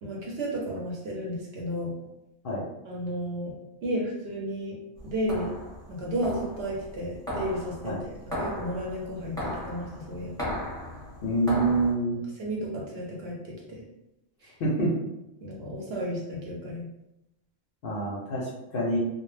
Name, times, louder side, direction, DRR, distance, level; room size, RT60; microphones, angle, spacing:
voice 1, 0.0-1.9 2.8-3.5 3.8-4.8 5.0-5.5 5.9-10.3 12.4-13.8 14.4-14.5 15.4-16.9, equal, 60° right, -3 dB, 0.8 m, -33 dB
sound 1, 5.0-11.9, left 1 dB, 5° left, 0.8 m, -36 dB
voice 2, 11.2-12.2 14.6-14.9 17.8-19.0, right 2 dB, 60° left, -5 dB, 0.6 m, -26 dB
2.1 x 2.1 x 3.1 m, 0.89 s
omnidirectional pair, 1.3 m